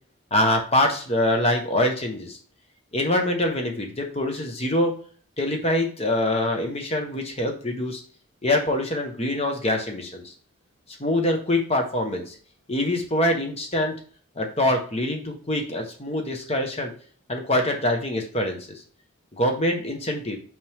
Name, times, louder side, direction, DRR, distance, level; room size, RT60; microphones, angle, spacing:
voice 1, 0.3-2.4 2.9-4.9 5.4-8.0 8.4-10.2 11.0-12.3 12.7-13.9 14.4-16.9 17.3-18.7 19.3-20.4, left 1 dB, 30° left, 3 dB, 1.3 m, -24 dB
6.0 x 5.4 x 3.6 m, 0.44 s
head